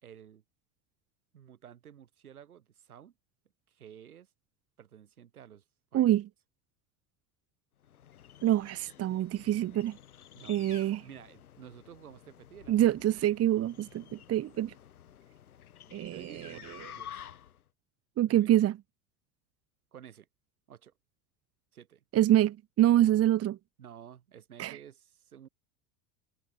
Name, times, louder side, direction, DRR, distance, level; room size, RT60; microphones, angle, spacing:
voice 1, 0.0-0.4 1.3-3.1 3.7-4.3 4.8-5.6 5.9-6.1 10.3-12.9 16.1-17.3 18.4-18.5 19.9-20.3 20.7-20.9 21.7-22.0 23.8-25.5, right 9 dB, 85° right, 5.9 m, -52 dB
voice 2, 5.9-6.3 8.4-10.0 10.5-11.0 12.7-14.7 15.9-16.6 18.2-18.8 22.1-23.6 24.6-24.8, right 13 dB, 35° right, 1.0 m, -26 dB
sound 1, 7.8-17.7, left 10 dB, 85° left, 1.9 m, -51 dB
hypercardioid pair, 80°, 43 cm